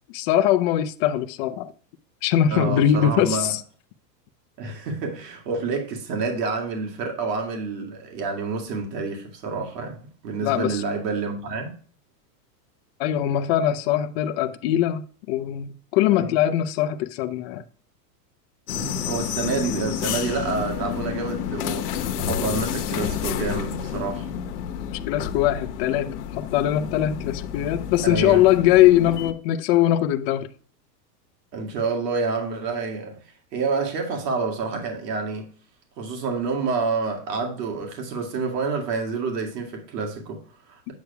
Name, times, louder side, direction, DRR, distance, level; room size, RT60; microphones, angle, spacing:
voice 1, 0.1-1.7 2.2-3.6 10.4-10.8 13.0-17.6 25.1-30.5, left 12 dB, 40° left, 0.6 m, -21 dB
voice 2, 2.5-3.5 4.6-11.7 16.2-16.3 18.7-24.3 28.0-28.5 29.0-29.1 31.5-33.2 33.5-35.5 36.0-40.9, right 4 dB, 75° right, 2.3 m, -28 dB
sound 1, 18.7-29.3, left 9 dB, 70° left, 1.2 m, -30 dB
8.3 x 6.5 x 2.3 m
supercardioid pair, 150°, 49 cm